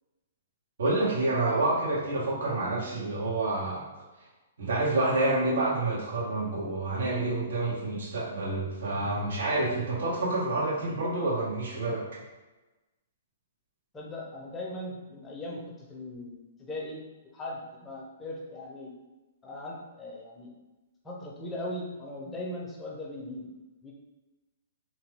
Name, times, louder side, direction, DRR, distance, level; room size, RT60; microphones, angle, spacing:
voice 1, 0.8-3.9 4.6-12.2, right 2 dB, 75° right, -7 dB, 1.3 m, -28 dB
voice 2, 13.9-17.0 17.3-18.9 19.4-20.5 21.0-23.5 23.8-23.9, left 1 dB, 15° left, -3 dB, 0.6 m, -39 dB
2.9 x 2.2 x 3.3 m, 1.1 s
hypercardioid pair, 125°, 0 cm